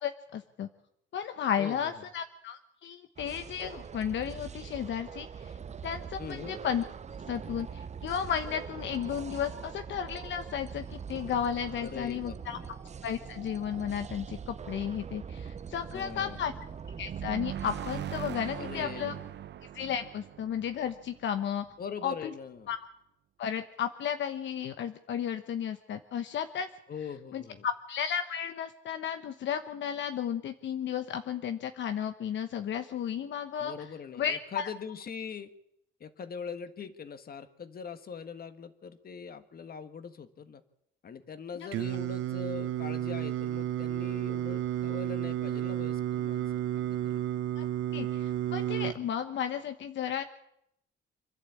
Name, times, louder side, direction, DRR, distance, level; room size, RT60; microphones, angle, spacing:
voice 1, 0.0-0.7 1.1-5.6 5.8-6.8 7.3-12.6 13.0-16.5 17.0-19.1 19.7-21.7 22.0-22.3 22.7-22.8 23.4-26.7 27.3-33.7 34.1-34.7 47.6-47.7 47.9-50.2, left 8 dB, 70° left, 8 dB, 1.2 m, -33 dB
voice 2, 1.6-2.1 6.2-6.6 11.8-12.7 15.9-16.5 18.6-19.2 21.8-22.7 26.9-27.7 33.6-35.5 36.0-40.6 41.0-47.2, left 6 dB, 50° left, 11 dB, 1.8 m, -42 dB
sound 1, 3.2-18.1, right 6 dB, 35° right, 0.8 m, -43 dB
sound 2, 17.1-21.7, right 10 dB, 60° right, 0.9 m, -40 dB
Singing, 41.7-48.9, right 11 dB, 80° right, 1.3 m, -32 dB
26.5 x 11.5 x 8.6 m, 0.77 s
cardioid pair, 90°, 20 cm